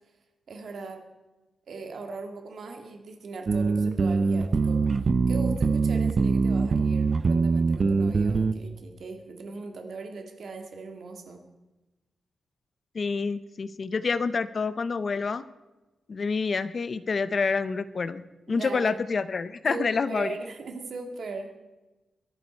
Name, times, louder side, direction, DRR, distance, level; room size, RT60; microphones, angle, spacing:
voice 1, 0.5-1.0 1.7-4.8 5.3-11.4 18.5-19.0 19.7-21.5, right 3 dB, 55° right, 4 dB, 2.1 m, -39 dB
sound 1, 3.5-8.5, right 4 dB, 35° right, 0.6 m, -23 dB
voice 2, 12.9-15.4 16.1-18.2 18.5-20.4, left 4 dB, 35° left, 14 dB, 0.6 m, -27 dB
22.5 x 11.5 x 4.5 m, 1.1 s
wide cardioid pair, 165°, 0 cm